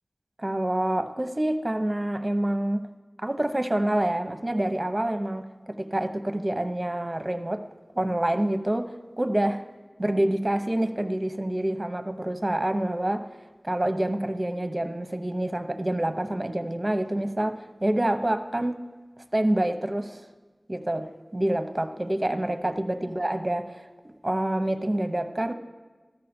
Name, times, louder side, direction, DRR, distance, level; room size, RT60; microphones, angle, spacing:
voice 1, 0.4-2.9 3.2-7.6 8.0-9.6 10.0-13.3 13.6-18.8 19.3-20.2 20.7-25.5, right 1 dB, 30° right, 8 dB, 0.9 m, -27 dB
14.5 x 13.5 x 4.4 m, 1.3 s
wide cardioid pair, 50°, 0 cm